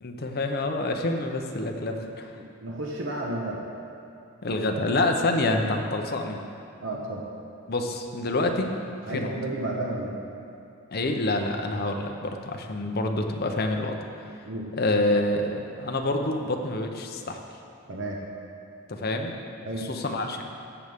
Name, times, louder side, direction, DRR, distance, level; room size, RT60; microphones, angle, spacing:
voice 1, 0.0-2.3 4.4-6.4 7.7-8.7 9.1-9.3 10.9-14.3 14.8-17.4 18.9-20.4, left 2 dB, 45° left, 3 dB, 0.7 m, -27 dB
voice 2, 2.4-3.6 4.5-4.8 6.8-7.2 9.1-10.2 14.4-14.7 17.9-18.2 19.6-19.9, right 1 dB, 55° right, -2 dB, 1.1 m, -32 dB
14.0 x 8.0 x 3.6 m, 2.6 s
head